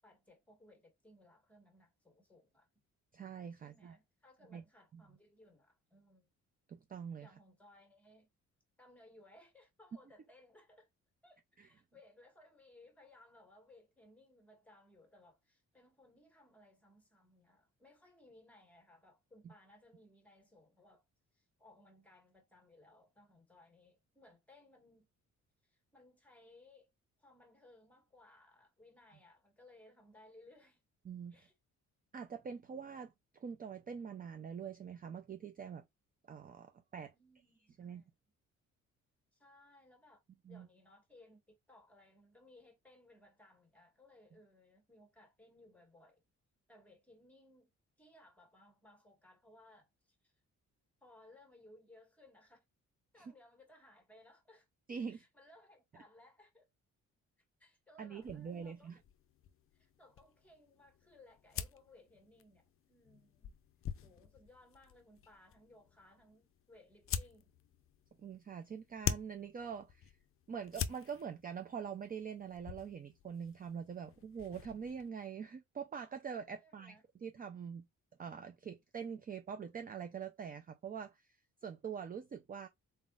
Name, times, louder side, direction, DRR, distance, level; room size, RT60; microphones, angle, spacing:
voice 1, 0.0-2.7 3.5-6.3 7.2-8.3 8.8-10.9 11.2-21.0 21.3-25.1 25.6-26.9 27.2-30.8 31.3-31.5 37.1-38.1 39.3-40.2 40.5-46.2 46.7-47.7 48.0-50.3 51.0-52.6 53.1-54.7 55.1-56.7 57.6-59.0 59.7-63.5 64.0-67.5 76.6-77.0, left 1 dB, 5° left, 1.5 m, -63 dB
voice 2, 3.1-4.0 4.5-4.6 4.9-5.0 6.7-7.3 11.6-11.7 19.4-19.5 31.1-31.5 32.1-35.8 36.3-37.1 37.8-38.0 40.5-40.7 53.2-53.3 54.9-55.2 58.0-59.0 68.2-70.1 70.5-77.9 78.2-81.3 81.6-82.7, right 7 dB, 30° right, 0.4 m, -44 dB
sound 1, 58.2-75.1, left 8 dB, 45° left, 0.5 m, -46 dB
4.0 x 3.8 x 2.4 m
cardioid pair, 130°, 30 cm